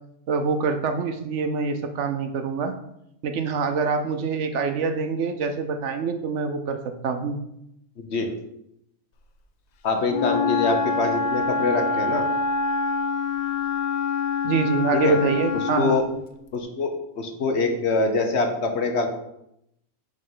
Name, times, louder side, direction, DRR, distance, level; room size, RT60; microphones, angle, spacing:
voice 1, 0.3-2.7 3.2-6.8 7.0-7.4 14.4-16.0, right 5 dB, 65° right, 7 dB, 0.9 m, -25 dB
voice 2, 8.0-8.3 9.8-12.3 14.9-15.2 15.8-16.0 16.5-19.1, left 3 dB, 60° left, 4 dB, 1.1 m, -24 dB
Wind instrument woodwind instrument, 10.1-16.1, left 4 dB, 85° left, 0.3 m, -25 dB
5.3 x 3.8 x 5.5 m, 0.78 s
omnidirectional pair, 1.4 m